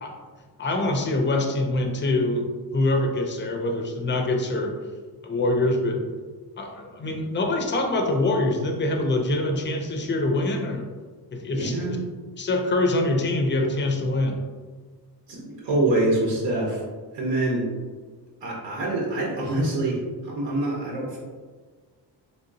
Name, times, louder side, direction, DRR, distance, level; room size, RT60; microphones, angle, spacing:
voice 1, 0.6-2.5 2.7-4.7 5.2-6.0 6.6-10.9 11.3-12.0 12.4-14.4, left 2 dB, 30° left, 3 dB, 0.4 m, -24 dB
voice 2, 11.5-12.0 15.3-16.8 17.1-17.7 18.4-21.2, right 2 dB, 85° right, -4 dB, 0.9 m, -25 dB
3.4 x 2.7 x 2.6 m, 1.4 s
cardioid pair, 130°, 41 cm